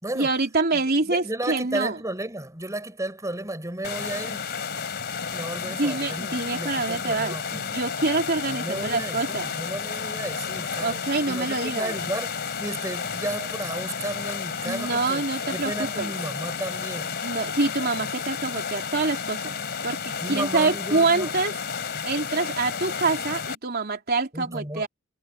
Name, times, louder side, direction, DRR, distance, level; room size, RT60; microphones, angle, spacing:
voice 1, 0.2-2.0 5.6-9.5 10.8-12.0 14.6-16.1 17.2-19.6 19.8-21.6 22.0-24.9, right 3 dB, 45° right, 3.5 m, -26 dB
voice 2, 0.7-4.4 5.3-7.7 8.5-15.2 15.5-17.2 20.2-21.3 24.3-24.8, right 1 dB, 15° right, 5.2 m, -33 dB
sound 1, 3.8-23.6, left 6 dB, 50° left, 3.1 m, -32 dB
head